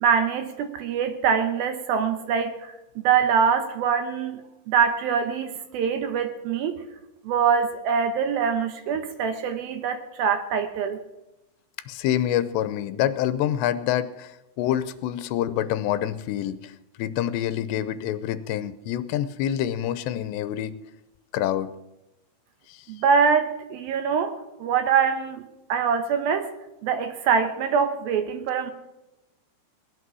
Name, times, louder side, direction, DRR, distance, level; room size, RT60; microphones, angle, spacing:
voice 1, 0.0-4.4 4.7-6.8 7.3-11.0 22.9-26.5 26.8-28.7, right 6 dB, 70° right, 8 dB, 2.5 m, -24 dB
voice 2, 11.9-16.7 17.0-20.7 21.3-21.7 22.7-22.9, left 11 dB, 85° left, 13 dB, 3.0 m, -26 dB
18.5 x 11.0 x 6.2 m, 0.96 s
omnidirectional pair, 4.9 m